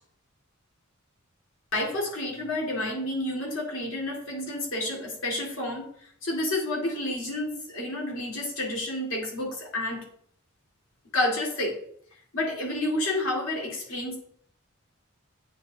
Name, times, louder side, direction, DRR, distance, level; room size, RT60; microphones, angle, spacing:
voice 1, 1.7-5.9 6.2-10.1 11.1-11.8 12.3-14.2, left 1 dB, 70° left, -2 dB, 2.0 m, -30 dB
9.0 x 3.9 x 2.7 m, 0.64 s
head